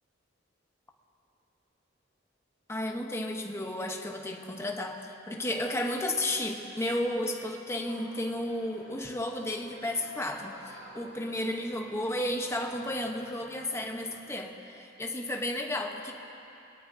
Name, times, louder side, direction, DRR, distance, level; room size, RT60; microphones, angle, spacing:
voice 1, 2.7-16.1, left 1 dB, 15° left, 2 dB, 0.9 m, -33 dB
sound 1, 7.6-14.2, equal, 15° right, 4.3 m, -53 dB
23.5 x 18.0 x 2.8 m, 2.9 s
head